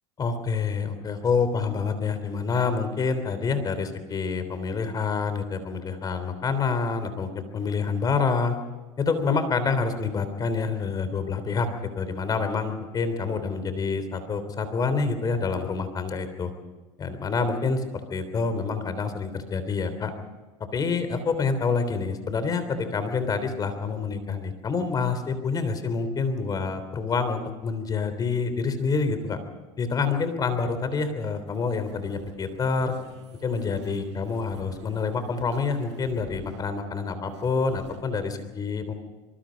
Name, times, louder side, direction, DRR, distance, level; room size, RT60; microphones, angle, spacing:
voice 1, 0.2-8.6 9.0-11.7 12.0-16.5 17.0-20.1 20.7-29.4 29.8-33.0 33.4-38.9, left 4 dB, 25° left, 10 dB, 3.5 m, -27 dB
sound 1, 31.5-36.6 37.3-38.0, right 7 dB, 85° right, 7.0 m, -48 dB
25.0 x 23.0 x 5.3 m, 1.2 s
supercardioid pair, 125°, 15 cm